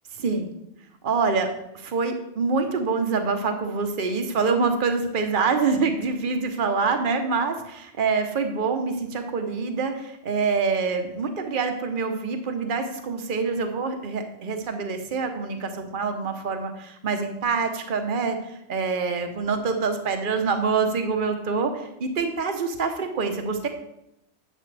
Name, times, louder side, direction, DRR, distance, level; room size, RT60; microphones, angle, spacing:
voice 1, 0.2-0.5 1.0-1.5 1.7-23.7, right 4 dB, 50° right, 6 dB, 1.1 m, -26 dB
11.0 x 7.3 x 3.3 m, 0.82 s
omnidirectional pair, 1.2 m